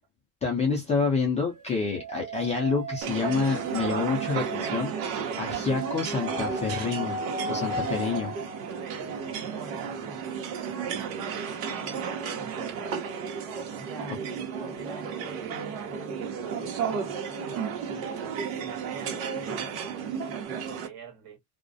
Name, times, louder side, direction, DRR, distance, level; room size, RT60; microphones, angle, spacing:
voice 1, 0.4-7.2 7.5-8.3 14.1-14.2, left 5 dB, 15° left, 0.4 m, -28 dB
sound 1, 1.5-5.3 5.7-13.9 14.5-20.4, right 2 dB, 15° right, 0.8 m, -40 dB
sound 2, 3.0-20.9, right 6 dB, 75° right, 1.0 m, -33 dB
voice 2, 8.1-10.4 10.8-12.9 13.7-18.1 18.6-21.4, right 4 dB, 45° right, 1.2 m, -46 dB
2.4 x 2.1 x 2.4 m
supercardioid pair, 125°, 47 cm